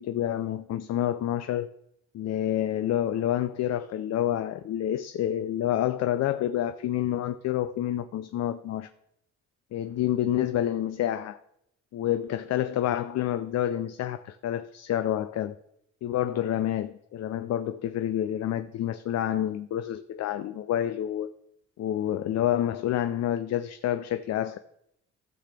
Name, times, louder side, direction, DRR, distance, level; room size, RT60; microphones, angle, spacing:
voice 1, 0.0-1.7 2.1-8.9 9.7-11.4 11.9-15.6 16.0-21.3 21.8-24.6, left 11 dB, 60° left, 0.5 m, -28 dB
15.0 x 5.8 x 3.4 m
cardioid pair, 90°, 30 cm